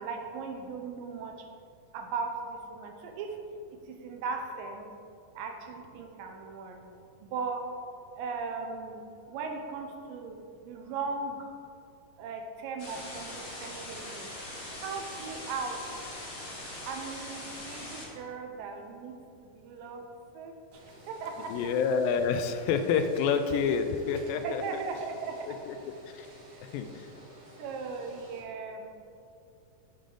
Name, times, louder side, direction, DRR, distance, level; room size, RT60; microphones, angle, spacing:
voice 1, 0.0-1.4 1.9-3.4 3.7-4.9 5.4-6.9 7.2-7.7 8.2-11.5 12.2-14.3 14.8-15.8 16.8-19.2 19.6-20.1 20.3-20.6 21.1-21.6 24.4-25.6 27.6-28.9, right 4 dB, 80° right, 4 dB, 2.4 m, -38 dB
sound 1, 12.8-18.0, left 1 dB, 45° left, 1.0 m, -41 dB
sound 2, 20.7-28.4, right 1 dB, 45° right, 2.2 m, -52 dB
voice 2, 21.5-24.6 25.5-26.3 26.6-27.1, left 6 dB, 85° left, 8 dB, 2.3 m, -28 dB
8.9 x 7.0 x 3.9 m, 2.5 s
omnidirectional pair, 4.0 m